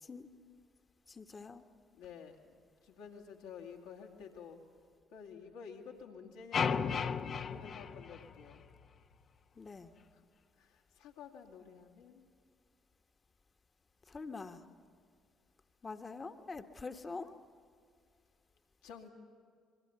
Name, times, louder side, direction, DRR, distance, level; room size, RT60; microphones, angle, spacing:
voice 1, 1.1-1.6 9.5-9.9 14.1-14.6 15.8-17.3, left 4 dB, 35° left, 8 dB, 1.4 m, -45 dB
voice 2, 1.9-2.5 2.8-4.6 5.1-8.6 10.1-10.2 10.6-12.3 18.8-19.1, left 6 dB, 75° left, 0 dB, 2.4 m, -51 dB
sound 1, 6.5-8.8, left 6 dB, 50° left, 0.9 m, -35 dB
26.5 x 23.5 x 7.0 m, 2.2 s
hypercardioid pair, 45°, 0 cm